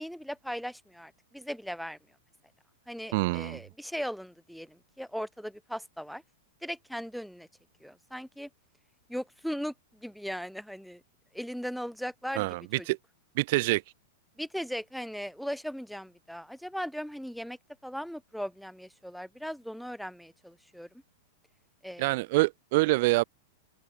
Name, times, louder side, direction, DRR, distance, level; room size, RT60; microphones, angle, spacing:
voice 1, 0.0-2.0 2.9-6.2 6.6-7.5 7.8-8.5 9.1-11.0 11.3-12.5 12.8-12.9 14.4-20.9 21.8-22.2, equal, ahead, 3.5 m, -38 dB
voice 2, 3.1-3.6 12.3-12.6 12.9-13.0 13.4-13.8 22.0-23.2, right 22 dB, 55° right, 0.4 m, -25 dB
open air
hypercardioid pair, 105°, 0 cm